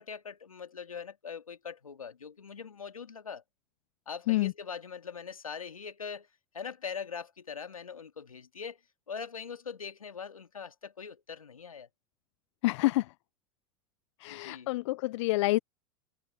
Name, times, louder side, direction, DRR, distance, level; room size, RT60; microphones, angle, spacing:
voice 1, 0.0-3.4 4.1-6.3 6.5-8.8 9.1-11.9 14.3-14.7, left 6 dB, 85° left, 2.0 m, -42 dB
voice 2, 12.6-13.1 14.2-15.6, left 19 dB, 60° left, 0.4 m, -28 dB
hypercardioid pair, 90°, 17 cm